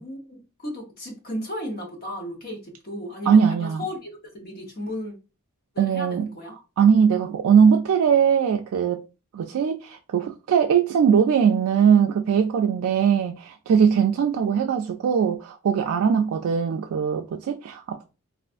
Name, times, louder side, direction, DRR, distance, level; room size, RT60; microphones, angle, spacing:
voice 1, 0.0-5.1 5.7-6.5, left 1 dB, 45° left, 0.9 m, -35 dB
voice 2, 3.3-3.8 5.8-6.3 6.8-9.0 9.3-18.1, right 7 dB, 85° right, 0.3 m, -20 dB
3.3 x 2.4 x 2.5 m
head